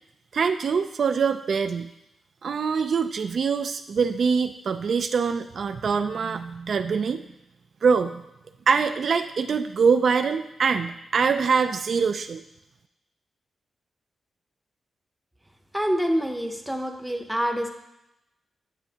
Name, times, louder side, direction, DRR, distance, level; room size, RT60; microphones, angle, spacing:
voice 1, 0.3-1.9 2.4-7.3 7.8-8.2 8.7-12.4, right 5 dB, 55° right, 8 dB, 0.3 m, -24 dB
voice 2, 15.7-17.7, equal, 5° right, 4 dB, 0.6 m, -26 dB
9.1 x 7.6 x 2.8 m, 0.90 s
wide cardioid pair, 140°, 0 cm